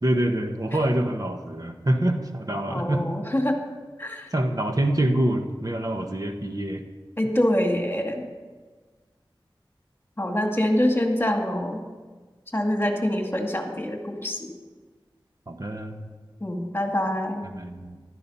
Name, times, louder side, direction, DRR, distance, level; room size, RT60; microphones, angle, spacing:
voice 1, 0.0-3.1 4.3-6.8 15.5-16.1 17.4-18.0, right 1 dB, 45° right, 4 dB, 1.4 m, -26 dB
voice 2, 2.7-3.6 4.0-4.3 7.2-8.2 10.2-11.9 12.5-14.5 16.4-17.5, left 1 dB, 25° left, 3 dB, 2.2 m, -25 dB
15.5 x 12.0 x 5.6 m, 1.4 s
wide cardioid pair, 60°, 9 cm